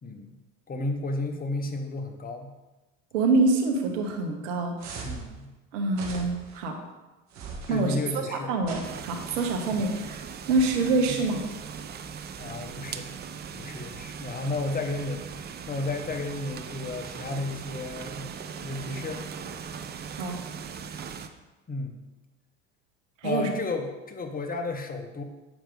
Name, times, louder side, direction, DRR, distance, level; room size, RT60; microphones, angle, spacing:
voice 1, 0.0-0.4 0.7-2.5 5.0-5.5 7.7-8.5 9.7-9.9 11.1-11.2 12.4-13.1 13.5-18.3 18.6-19.3 20.2-20.3 21.7-21.9 23.2-25.2, left 2 dB, 20° left, 4 dB, 1.0 m, -33 dB
voice 2, 3.1-4.7 5.7-6.8 7.7-10.2 10.5-11.4 20.1-20.4 23.2-23.5, right 3 dB, 75° right, 3 dB, 1.3 m, -26 dB
sound 1, 4.8-5.3 5.9-6.6 7.3-7.9 8.6-9.4, right 5 dB, 45° right, 1.4 m, -40 dB
sound 2, 8.8-21.3, right 7 dB, 25° right, 0.5 m, -39 dB
7.2 x 5.1 x 3.8 m, 1.1 s
hypercardioid pair, 75°, 39 cm